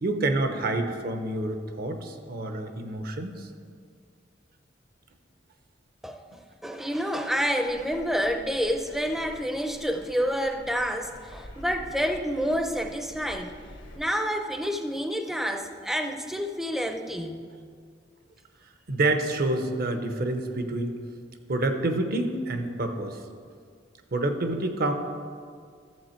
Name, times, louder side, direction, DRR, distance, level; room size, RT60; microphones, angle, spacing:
voice 1, 0.0-3.5 18.9-21.0 21.5-23.2 24.1-24.9, right 2 dB, 55° right, 7 dB, 0.8 m, -28 dB
voice 2, 6.0-13.6 13.9-17.4, equal, ahead, 5 dB, 0.6 m, -28 dB
Thunder, 7.6-14.0, left 1 dB, 80° left, 1.4 m, -47 dB
12.0 x 7.4 x 4.4 m, 2.1 s
head